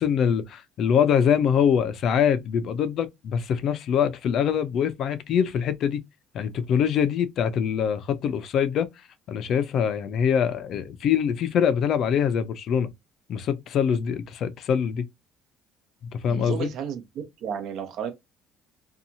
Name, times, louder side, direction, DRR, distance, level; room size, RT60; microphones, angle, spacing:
voice 1, 0.0-6.0 6.3-8.9 9.3-12.9 13.3-15.0 16.2-16.7, left 8 dB, 55° left, 0.4 m, -24 dB
voice 2, 16.3-18.1, right 7 dB, 65° right, 0.8 m, -33 dB
2.7 x 2.3 x 2.7 m
cardioid pair, 100°, 0 cm